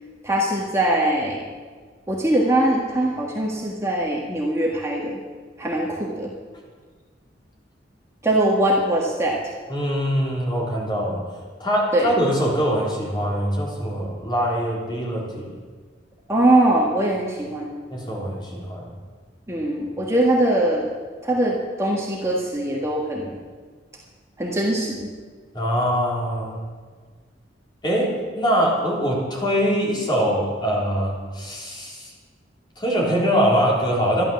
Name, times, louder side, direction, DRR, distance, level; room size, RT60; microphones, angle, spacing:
voice 1, 0.2-1.5 2.1-5.2 5.6-6.3 8.2-9.4 11.9-12.1 16.3-17.8 19.5-20.9 21.2-23.4 24.4-25.1, right 1 dB, 15° right, -3 dB, 1.5 m, -22 dB
voice 2, 9.7-11.2 11.6-15.5 17.9-18.9 25.5-26.6 27.8-32.1 32.8-34.2, equal, 25° left, -4 dB, 3.6 m, -23 dB
12.0 x 11.5 x 7.0 m, 1.5 s
head